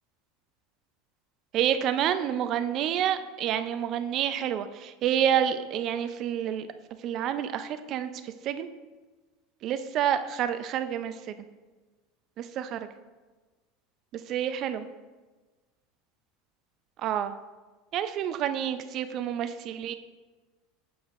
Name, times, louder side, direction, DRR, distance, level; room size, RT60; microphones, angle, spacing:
voice 1, 1.5-6.7 7.0-8.1 8.5-8.7 9.6-11.3 12.4-12.9 14.3-14.8 17.0-17.3 17.9-19.9, right 9 dB, 50° right, 11 dB, 0.5 m, -28 dB
7.8 x 5.0 x 3.7 m, 1.3 s
hypercardioid pair, 90°, 0 cm